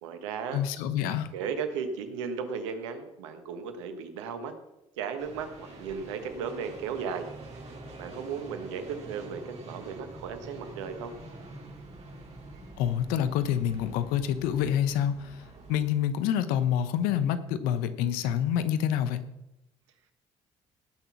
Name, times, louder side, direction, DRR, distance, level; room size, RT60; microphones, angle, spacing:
voice 1, 0.0-0.6 1.3-4.5 5.0-7.3 8.0-11.1, right 6 dB, 90° right, 8 dB, 1.3 m, -35 dB
voice 2, 0.5-1.3 12.8-15.4 15.7-19.2, left 9 dB, 80° left, 12 dB, 0.9 m, -27 dB
sound 1, 5.2-15.8, right 2 dB, 45° right, 4.0 m, -46 dB
18.0 x 6.2 x 5.9 m, 0.90 s
hypercardioid pair, 55°, 15 cm